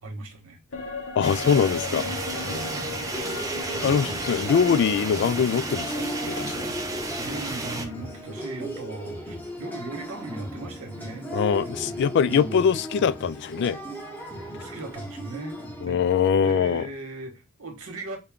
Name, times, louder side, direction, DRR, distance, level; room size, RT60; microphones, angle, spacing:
voice 1, 0.0-0.6 1.6-3.0 7.2-11.3 12.1-12.7 14.6-16.0 16.4-18.2, right 2 dB, 85° right, 1.3 m, -38 dB
sound 1, 0.7-10.2 10.5-10.6, left 4 dB, 75° left, 0.8 m, -38 dB
voice 2, 1.2-2.1 3.8-6.7 11.3-13.8 15.8-16.9, left 7 dB, 55° left, 0.3 m, -23 dB
sound 2, 1.2-7.9, right 3 dB, 15° right, 0.6 m, -33 dB
sound 3, 2.3-15.9, equal, 10° left, 0.9 m, -36 dB
5.3 x 2.3 x 3.6 m
head